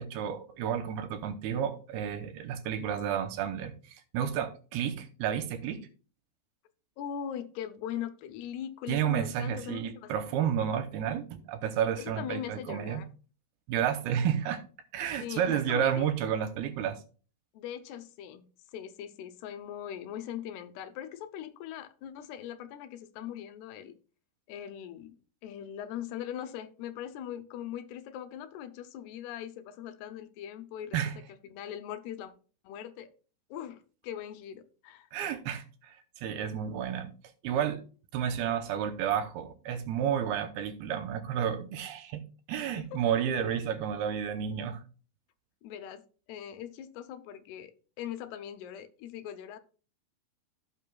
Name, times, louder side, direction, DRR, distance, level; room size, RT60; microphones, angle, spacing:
voice 1, 0.0-5.9 8.9-13.0 13.7-14.6 14.9-17.0 30.9-31.1 35.1-37.1 37.4-37.8 38.1-44.8, right 9 dB, 80° right, 2.6 m, -31 dB
voice 2, 7.0-10.1 10.4-10.5 12.0-13.1 15.2-16.1 17.5-23.9 24.5-25.2 25.4-31.0 31.3-32.3 32.6-33.1 33.5-35.1 42.9-43.0 45.6-46.0 46.3-49.6, left 10 dB, 80° left, 2.7 m, -40 dB
16.5 x 5.6 x 2.3 m
omnidirectional pair, 4.7 m